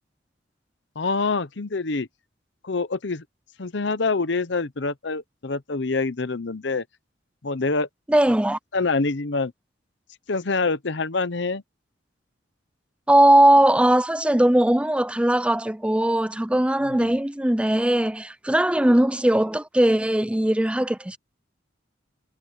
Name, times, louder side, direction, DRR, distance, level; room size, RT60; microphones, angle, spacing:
voice 1, 1.0-2.1 2.6-3.2 3.6-6.8 7.4-7.9 8.7-9.5 10.3-11.6 16.9-17.1, left 3 dB, 65° left, 0.9 m, -26 dB
voice 2, 8.1-8.6 13.1-21.2, right 1 dB, 5° right, 0.4 m, -19 dB
head